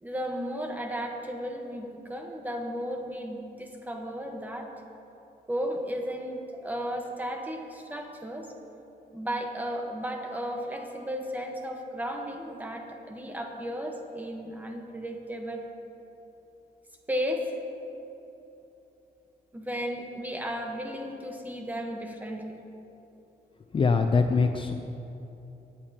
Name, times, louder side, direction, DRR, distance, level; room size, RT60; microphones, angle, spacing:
voice 1, 0.0-4.7 5.5-8.5 9.1-15.6 17.1-17.5 19.5-22.6, equal, 10° right, 2 dB, 1.1 m, -34 dB
voice 2, 23.7-24.7, left 4 dB, 35° left, 6 dB, 0.4 m, -23 dB
18.5 x 8.6 x 2.9 m, 3.0 s
wide cardioid pair, 130°, 16 cm